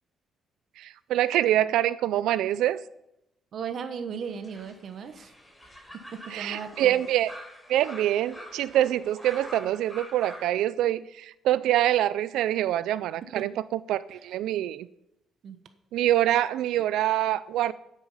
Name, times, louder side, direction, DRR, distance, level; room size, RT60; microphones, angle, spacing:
voice 1, 0.8-2.8 6.3-7.3 7.7-14.9 15.9-17.7, right 13 dB, 85° right, 0.4 m, -25 dB
voice 2, 3.5-5.3 5.9-7.0 13.3-13.5 15.4-15.6 16.7-16.8, right 6 dB, 60° right, 1.1 m, -37 dB
sound 1, 4.2-10.5, equal, 5° left, 3.8 m, -45 dB
9.6 x 8.4 x 5.5 m
cardioid pair, 90°, 0 cm